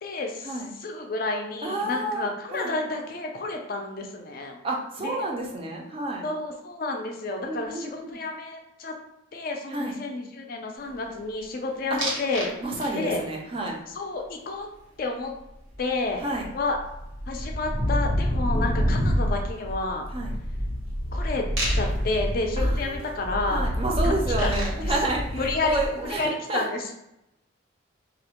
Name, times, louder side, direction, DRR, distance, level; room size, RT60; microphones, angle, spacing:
voice 1, 0.0-0.5 0.8-4.6 5.0-5.2 6.2-8.9 9.3-12.5 13.0-13.2 13.9-14.7 15.0-15.3 15.8-16.2 16.5-16.8 17.3-20.1 21.1-21.4 21.7-23.7 24.0-24.1 24.4-24.9 25.3-25.8 26.0-26.9, left 3 dB, 45° left, 3 dB, 0.4 m, -30 dB
voice 2, 1.6-2.8 4.6-6.3 7.5-8.2 9.7-9.9 11.9-12.0 12.6-13.8 16.2-16.5 19.2-19.3 20.1-20.4 22.6-23.1 23.5-26.7, right 2 dB, 30° right, -1 dB, 0.4 m, -30 dB
sound 1, 12.0-12.5 12.8-13.3 15.7-15.8 16.1-26.1, equal, 85° right, 1.0 m, -27 dB
2.4 x 2.1 x 2.8 m, 0.85 s
head